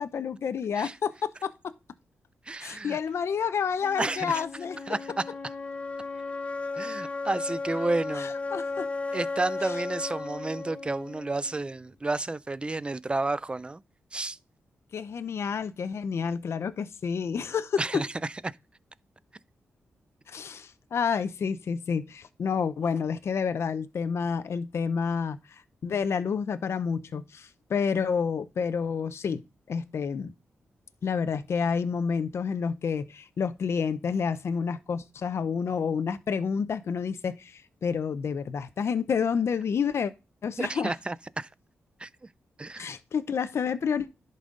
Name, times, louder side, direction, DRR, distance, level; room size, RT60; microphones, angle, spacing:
voice 1, 0.0-1.5 2.6-4.8 8.2-8.8 9.6-9.7 14.9-18.0 20.3-25.4 25.8-29.4 29.7-30.3 31.0-40.1 40.4-40.9 42.8-44.1, left 6 dB, 65° left, 0.7 m, -29 dB
voice 2, 2.5-3.0 4.0-4.4 4.9-5.2 6.8-8.3 9.1-13.8 14.1-14.4 17.8-18.3 40.6-41.5 42.0-42.1 42.6-43.0, right 2 dB, 20° right, 0.5 m, -31 dB
sound 1, 3.8-11.8, left 3 dB, 30° left, 1.1 m, -35 dB
11.0 x 5.5 x 3.8 m
cardioid pair, 85°, 5 cm